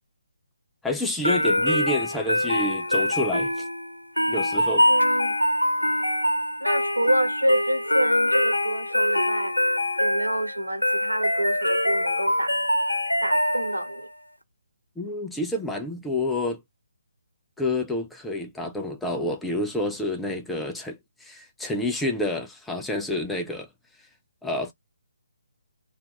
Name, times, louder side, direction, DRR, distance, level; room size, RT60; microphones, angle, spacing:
voice 1, 0.8-3.6 4.3-4.9 15.0-16.6 17.6-23.7 24.4-24.7, left 1 dB, 5° left, 0.5 m, -28 dB
sound 1, 1.2-14.0, left 1 dB, 85° left, 0.8 m, -24 dB
voice 2, 4.9-5.4 6.6-9.5 10.0-12.6 13.2-14.1, right 1 dB, 80° right, 1.0 m, -27 dB
3.4 x 2.5 x 2.9 m
figure-of-eight pair, 145°, 0 cm